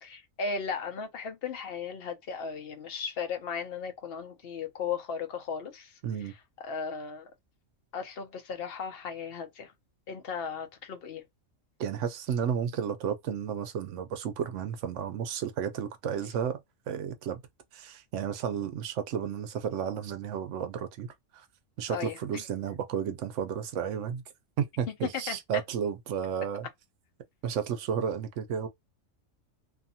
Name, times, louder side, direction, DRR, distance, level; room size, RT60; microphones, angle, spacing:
voice 1, 0.0-5.9 6.2-6.3 6.6-7.3 7.9-9.7 10.1-11.2 21.9-22.4 25.3-25.6, left 5 dB, 55° left, 0.8 m, -36 dB
voice 2, 6.0-6.3 11.8-16.6 16.9-17.4 17.7-21.1 21.3-21.4 21.8-24.2 24.6-26.7 27.4-28.7, right 8 dB, 70° right, 0.9 m, -32 dB
2.6 x 2.2 x 2.7 m
omnidirectional pair, 1.4 m